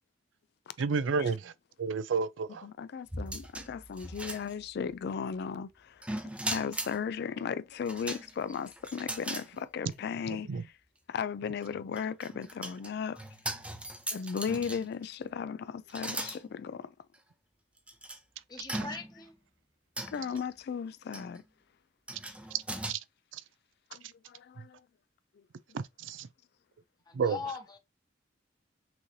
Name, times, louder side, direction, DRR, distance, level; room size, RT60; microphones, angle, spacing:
voice 1, 0.8-1.5 1.8-2.7 10.3-10.6 22.5-22.6 22.9-23.0 23.3-23.4 25.7-26.3 27.1-27.4, right 5 dB, 85° right, 0.4 m, -31 dB
voice 2, 2.6-6.1 6.5-10.8 11.1-13.2 14.1-16.9 20.1-21.4 23.9-24.8 25.3-25.4, left 6 dB, 60° left, 0.3 m, -36 dB
sound 1, 3.1-4.9 6.0-7.0 7.9-9.5 9.9-10.0 11.5-15.1 15.9-16.4 17.1-17.2 17.9-18.2 18.7-19.3 20.0-20.4 21.1-21.4 22.1-22.9, right 1 dB, 5° right, 0.7 m, -39 dB
voice 3, 18.5-19.3 27.1-27.8, left 4 dB, 20° left, 1.1 m, -41 dB
6.0 x 3.2 x 2.6 m
head